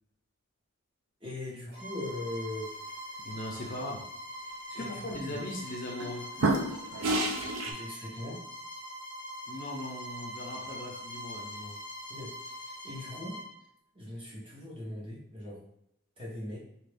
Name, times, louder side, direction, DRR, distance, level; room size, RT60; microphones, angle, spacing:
voice 1, 1.2-2.7 4.7-5.4 7.6-8.4 12.1-13.4 13.9-15.6 16.2-16.6, left 1 dB, 25° right, -5 dB, 1.0 m, -40 dB
Bowed string instrument, 1.7-13.5, equal, 50° right, 1.5 m, -43 dB
voice 2, 3.2-4.0 4.7-6.3 9.5-11.7, left 1 dB, 40° left, -1 dB, 0.5 m, -39 dB
sound 1, 4.8-5.1 5.7-6.1 6.4-7.7, right 2 dB, 75° right, 0.5 m, -29 dB
2.9 x 2.6 x 3.4 m, 0.75 s
head